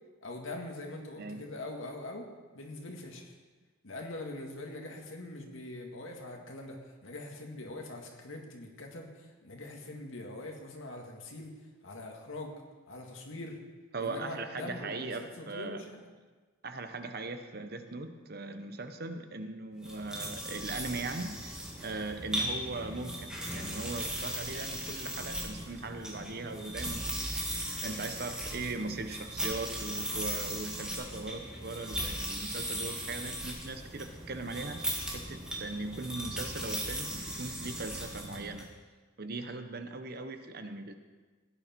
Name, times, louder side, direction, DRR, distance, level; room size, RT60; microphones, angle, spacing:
voice 1, 0.2-2.2 2.5-3.3 3.8-11.6 11.8-13.6 14.0-16.0, left 2 dB, 85° left, 1 dB, 2.0 m, -43 dB
voice 2, 13.9-15.8 16.6-27.3 27.8-34.8 35.1-38.7 39.2-40.9, right 3 dB, 50° right, 8 dB, 0.9 m, -39 dB
sound 1, 19.8-38.7, right 1 dB, 5° right, 1.9 m, -38 dB
16.5 x 9.7 x 4.5 m, 1.3 s
head